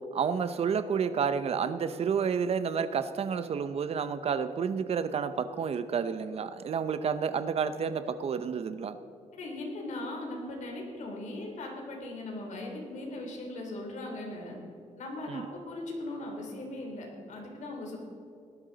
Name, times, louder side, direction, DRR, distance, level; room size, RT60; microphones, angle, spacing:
voice 1, 0.1-9.0 15.3-15.5, right 6 dB, 50° right, 12 dB, 0.7 m, -30 dB
voice 2, 9.4-14.6 15.0-18.0, left 2 dB, 70° left, 0 dB, 3.2 m, -39 dB
18.5 x 11.5 x 4.0 m, 2.7 s
cardioid pair, 125°, 13 cm